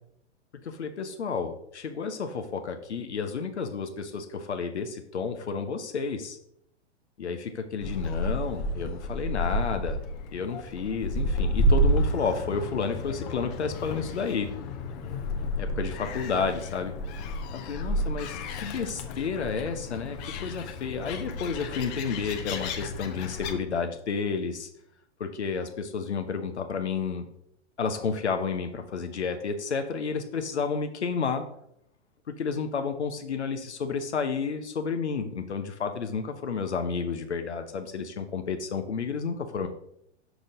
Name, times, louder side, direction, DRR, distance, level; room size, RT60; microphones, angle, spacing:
voice 1, 0.6-6.4 7.2-10.0 10.3-14.5 15.6-17.0 17.5-24.7 25.2-27.3 27.8-31.4 32.3-39.7, left 5 dB, 70° left, 7 dB, 0.8 m, -31 dB
Gull seagull, 7.8-23.5, equal, 35° left, 0.9 m, -30 dB
6.3 x 5.1 x 3.8 m, 0.74 s
figure-of-eight pair, 100°, 35 cm